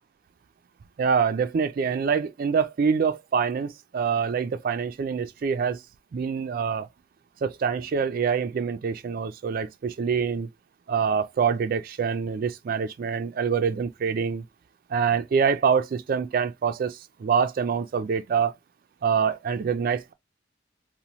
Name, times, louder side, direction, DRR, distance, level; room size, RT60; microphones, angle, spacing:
voice 1, 1.0-5.8 6.1-6.9 7.4-10.5 10.9-14.4 14.9-18.5 19.0-20.1, right 6 dB, 50° right, 0.3 m, -25 dB
2.9 x 2.1 x 2.6 m
head